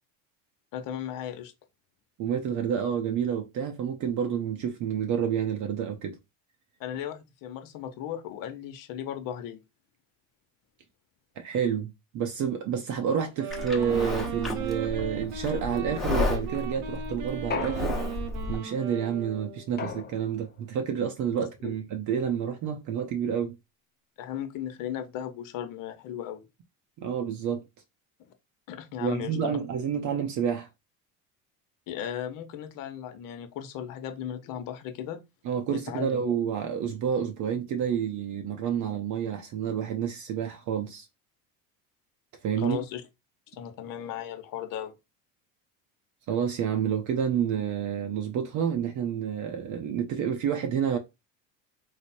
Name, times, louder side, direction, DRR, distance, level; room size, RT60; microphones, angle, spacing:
voice 1, 0.7-1.5 6.8-9.6 21.6-21.7 24.2-26.4 28.2-28.3 28.7-29.6 31.9-35.2 35.7-36.2 42.6-43.0 43.5-44.9, left 10 dB, 55° left, 0.8 m, -36 dB
voice 2, 2.2-6.2 11.4-18.0 18.5-23.6 27.0-27.6 29.0-30.7 35.4-41.1 42.4-42.8 46.3-51.0, right 8 dB, 50° right, 0.6 m, -29 dB
Wind instrument woodwind instrument, 13.2-19.8, right 6 dB, 90° right, 0.9 m, -38 dB
Livestock farm animals working animals, 13.5-18.6, left 2 dB, ahead, 1.0 m, -32 dB
sound 1, 17.5-18.5 19.8-20.6, left 6 dB, 25° left, 0.6 m, -36 dB
3.2 x 2.1 x 4.1 m
supercardioid pair, 95°, 40 cm